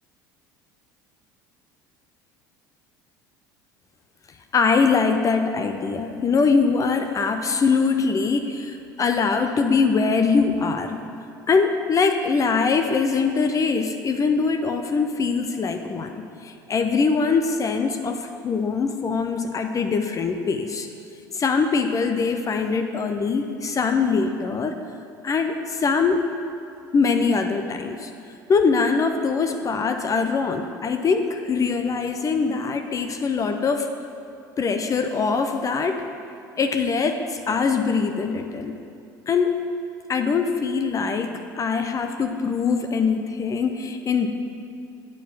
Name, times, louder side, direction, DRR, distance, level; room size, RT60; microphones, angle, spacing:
voice 1, 4.5-11.0 11.5-16.1 16.4-20.9 21.3-24.8 25.2-26.3 26.9-28.1 28.5-33.9 34.6-36.0 36.6-38.8 39.3-39.6 40.1-44.3, left 5 dB, 30° left, 6 dB, 0.6 m, -22 dB
9.0 x 4.6 x 7.0 m, 2.5 s
hypercardioid pair, 65°, 11 cm